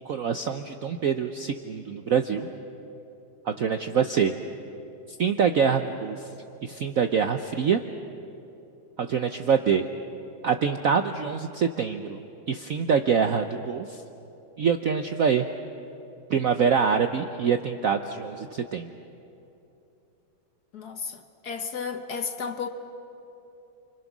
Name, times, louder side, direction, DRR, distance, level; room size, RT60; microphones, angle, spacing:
voice 1, 0.0-2.5 3.5-4.4 5.2-6.3 6.6-7.8 9.0-9.8 10.4-12.2 12.5-14.0 14.6-15.5 16.3-18.9, right 6 dB, 65° right, 0.8 m, -25 dB
voice 2, 20.7-22.7, left 6 dB, 55° left, 1.5 m, -33 dB
29.5 x 25.0 x 6.1 m
omnidirectional pair, 2.3 m